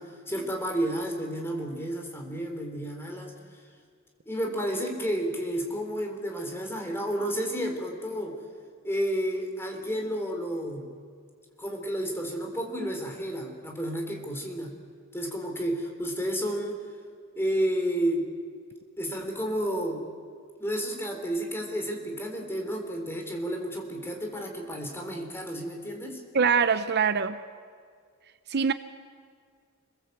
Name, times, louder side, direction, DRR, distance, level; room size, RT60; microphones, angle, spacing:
voice 1, 0.0-3.3 4.3-8.4 8.8-10.9 11.6-14.7 15.1-16.8 17.4-18.3 19.0-20.1 20.6-26.2, equal, 10° left, 2 dB, 4.0 m, -31 dB
voice 2, 26.3-27.4 28.5-28.7, right 6 dB, 50° right, 12 dB, 0.7 m, -23 dB
29.0 x 21.5 x 8.2 m, 2.1 s
head